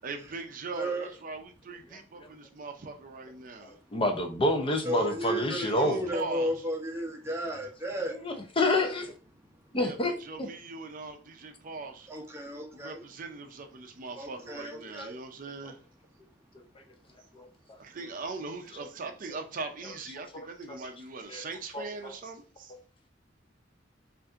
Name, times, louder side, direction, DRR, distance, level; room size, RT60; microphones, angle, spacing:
voice 1, 0.0-3.7 5.5-6.5 9.7-12.1 12.7-15.8 17.8-22.7, right 4 dB, 50° right, 0.5 m, -40 dB
voice 2, 0.7-1.1 3.7-3.8 4.8-8.3 12.1-13.0 14.2-15.2, right 1 dB, 15° right, 0.7 m, -33 dB
voice 3, 3.6-6.1 8.2-9.1 9.7-10.1 17.3-17.5 20.7-20.8 21.3-21.4 21.7-22.1, left 1 dB, 30° left, 0.6 m, -28 dB
5.3 x 2.5 x 2.5 m
head